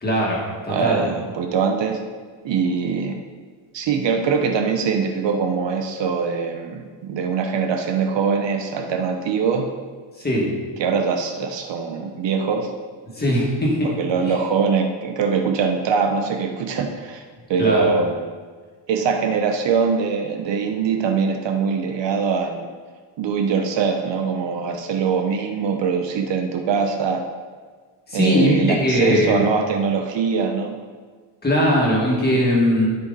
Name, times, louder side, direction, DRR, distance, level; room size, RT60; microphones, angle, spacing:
voice 1, 0.0-1.0 10.2-10.5 13.2-13.9 17.6-17.9 28.1-29.4 31.4-32.9, equal, 20° left, -4 dB, 1.9 m, -19 dB
voice 2, 0.7-2.0 2.4-3.2 3.7-9.7 10.8-12.7 13.8-17.2 17.5-18.2 18.9-22.7 23.2-27.2 28.1-30.8, right 5 dB, 60° right, 4 dB, 0.9 m, -22 dB
13.0 x 5.3 x 4.0 m, 1.5 s
cardioid pair, 180°, 50 cm